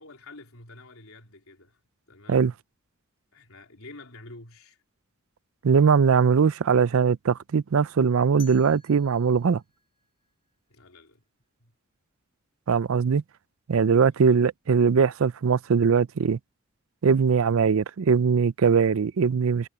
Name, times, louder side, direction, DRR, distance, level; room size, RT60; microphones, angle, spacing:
voice 1, 0.0-1.8 2.1-2.5 3.3-4.8 10.7-11.2 11.6-11.7 14.2-14.4, left 2 dB, 80° left, 3.7 m, -48 dB
voice 2, 5.6-9.6 12.7-13.2 13.7-16.4 17.0-19.7, right 6 dB, 75° right, 0.5 m, -21 dB
sound 1, 8.4-11.3, left 9 dB, 25° left, 7.0 m, -53 dB
head